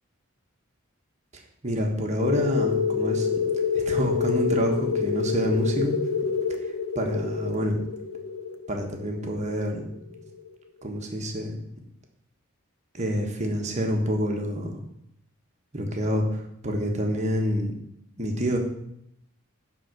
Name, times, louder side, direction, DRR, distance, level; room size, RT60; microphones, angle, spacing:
voice 1, 1.6-3.3 3.7-6.0 6.9-7.8 8.7-9.9 10.8-11.6 12.9-14.8 15.7-17.7 18.2-18.6, equal, 30° right, 2 dB, 1.3 m, -27 dB
sound 1, 2.2-10.5, left 6 dB, 80° left, 1.0 m, -28 dB
10.0 x 3.9 x 6.6 m, 0.75 s
head